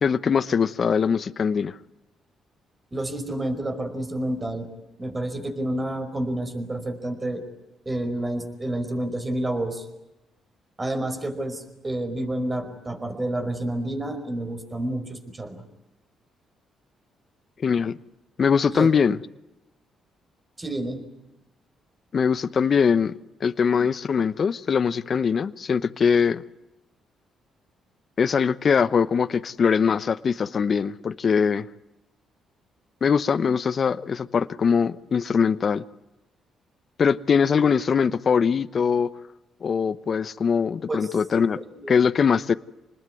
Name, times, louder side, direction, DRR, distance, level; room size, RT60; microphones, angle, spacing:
voice 1, 0.0-1.8 17.6-18.0 18.4-19.2 22.1-26.4 28.2-31.7 33.0-35.8 37.0-39.1 39.6-41.6 41.9-42.5, left 6 dB, 45° left, 1.0 m, -22 dB
voice 2, 2.9-4.7 5.0-7.4 7.8-9.9 10.8-15.6 18.7-18.9 20.6-21.0 40.9-41.2 41.7-41.9, right 1 dB, 20° right, 5.1 m, -29 dB
27.5 x 20.5 x 9.6 m
cardioid pair, 90°, 0 cm